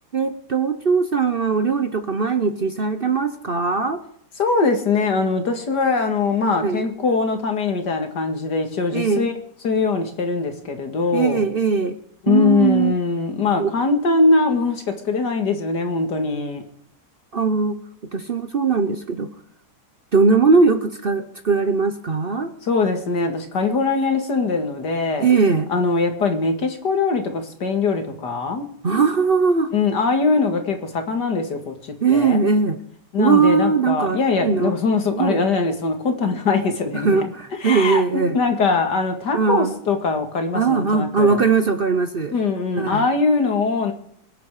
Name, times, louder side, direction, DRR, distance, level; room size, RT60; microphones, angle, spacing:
voice 1, 0.1-4.0 6.4-6.8 8.9-9.3 11.1-12.0 12.3-13.0 13.6-13.7 17.3-17.8 18.1-19.3 20.1-22.5 25.2-25.7 28.8-29.7 32.0-32.8 33.2-34.8 35.1-35.4 36.9-38.4 39.3-39.8 40.5-42.3 42.8-43.1, right 5 dB, 40° right, 10 dB, 0.9 m, -20 dB
voice 2, 4.4-9.3 9.6-11.4 12.2-16.6 22.6-25.3 25.7-28.7 29.7-32.5 33.1-37.1 37.6-41.4 42.3-43.9, left 4 dB, 80° left, 5 dB, 2.7 m, -22 dB
24.5 x 8.5 x 4.9 m, 0.68 s
omnidirectional pair, 1.8 m